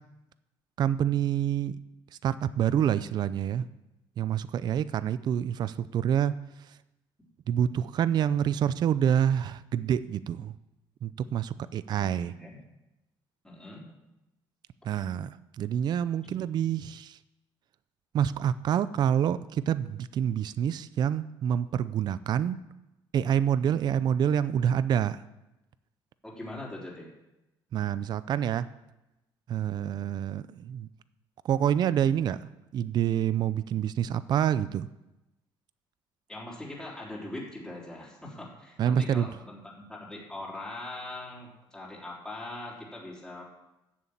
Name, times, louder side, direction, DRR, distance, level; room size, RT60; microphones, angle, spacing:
voice 1, 0.8-1.8 2.2-3.7 4.2-6.8 7.5-10.5 11.0-12.3 14.8-17.2 18.1-22.6 23.1-25.2 27.7-28.7 29.5-30.9 31.4-34.9 38.8-39.3, right 9 dB, 50° right, 15 dB, 0.5 m, -27 dB
voice 2, 12.0-12.6 13.4-13.8 16.2-16.4 26.2-27.1 36.3-43.4, left 2 dB, 5° left, -5 dB, 3.6 m, -41 dB
11.0 x 7.1 x 8.7 m, 0.95 s
cardioid pair, 120°, 9 cm